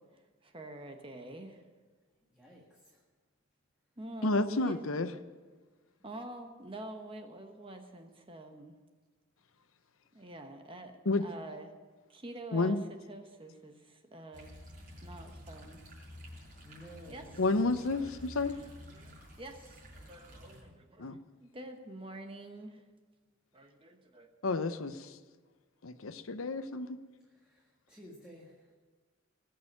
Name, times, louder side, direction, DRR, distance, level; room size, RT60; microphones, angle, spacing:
voice 1, 0.0-1.6 4.0-4.8 6.0-8.8 10.1-11.7 12.1-12.8 13.1-14.6 15.0-15.8 17.1-17.4 18.0-22.8 23.5-24.3, right 2 dB, 25° right, 1.1 m, -47 dB
voice 2, 2.3-3.0 16.6-17.3 27.3-28.7, equal, 5° right, 1.8 m, -54 dB
voice 3, 4.2-5.1 11.1-11.3 12.5-12.8 17.4-18.6 21.0-21.2 24.4-25.2 25.8-27.0, left 3 dB, 70° left, 0.8 m, -30 dB
sound 1, 14.3-20.6, equal, 40° right, 5.1 m, -51 dB
20.0 x 6.7 x 8.9 m
head